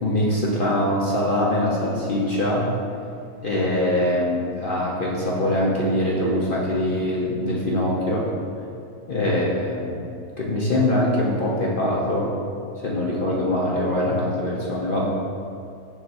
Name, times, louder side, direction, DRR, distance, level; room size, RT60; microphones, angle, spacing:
voice 1, 0.0-2.7 3.4-8.3 9.1-10.0 10.4-12.3 12.8-15.1, left 1 dB, 45° left, -5 dB, 0.7 m, -23 dB
7.2 x 6.6 x 2.6 m, 2.4 s
omnidirectional pair, 1.7 m